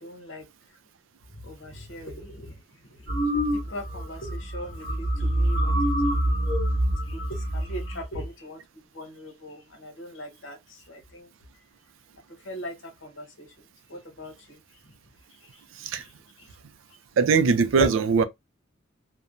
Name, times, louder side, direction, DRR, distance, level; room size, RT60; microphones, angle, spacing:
voice 1, 0.0-0.4 1.4-2.5 3.5-5.7 6.0-6.6 7.1-8.6 8.9-10.6 10.9-11.3 12.4-12.7 13.0-13.5 13.9-14.6 17.8-17.9, equal, 70° left, 1.0 m, -37 dB
Disturbing Horror Whale Ambiance, 3.1-4.0 4.3-4.6 4.8-8.0, right 1 dB, 25° left, 1.3 m, -25 dB
voice 2, 17.2-18.2, right 5 dB, 80° right, 0.4 m, -20 dB
2.9 x 2.1 x 2.5 m
head